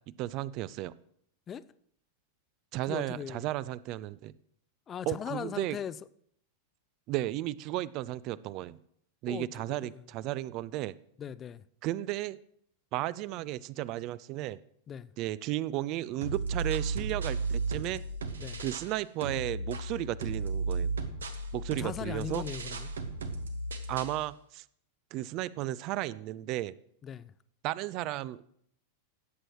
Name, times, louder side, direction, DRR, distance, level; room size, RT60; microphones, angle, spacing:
voice 1, 0.2-0.9 2.7-4.3 5.1-5.8 7.1-8.8 9.2-10.9 11.8-12.4 12.9-14.6 15.2-18.0 18.6-20.9 21.5-22.4 23.9-24.6 25.1-26.8 27.6-28.4, right 15 dB, 40° right, 0.4 m, -34 dB
voice 2, 2.9-3.4 4.9-5.9 9.3-9.9 11.2-11.6 14.9-15.1 18.4-18.6 21.7-22.9 27.0-27.3, left 8 dB, 25° left, 0.4 m, -39 dB
sound 1, 16.2-18.9 19.2-24.2, right 3 dB, 70° right, 1.0 m, -34 dB
17.0 x 7.6 x 3.1 m
figure-of-eight pair, 90°, 0 cm